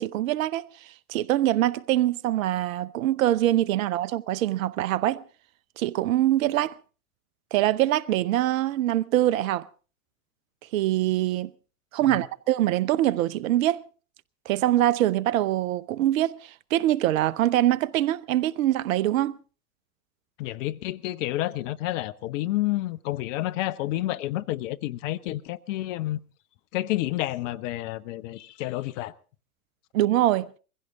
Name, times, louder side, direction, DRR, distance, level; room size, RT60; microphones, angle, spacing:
voice 1, 0.0-5.2 5.8-6.7 7.5-9.7 10.7-11.5 11.9-13.9 14.5-19.4 29.9-30.5, right 14 dB, 65° right, 0.8 m, -24 dB
voice 2, 20.4-26.2 26.7-29.1, left 16 dB, 60° left, 0.9 m, -29 dB
22.5 x 16.0 x 3.6 m
hypercardioid pair, 85°, 44 cm